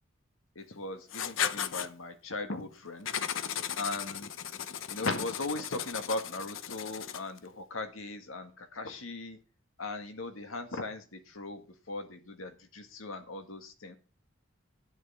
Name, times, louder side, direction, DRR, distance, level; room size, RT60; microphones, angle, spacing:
voice 1, 0.6-3.1 3.8-4.3 4.9-9.4 9.8-14.0, left 2 dB, 90° left, 7 dB, 1.8 m, -38 dB
Writing, 1.1-1.9 3.1-7.4, left 9 dB, 70° left, 0.7 m, -36 dB
11.0 x 10.5 x 4.3 m, 0.34 s
head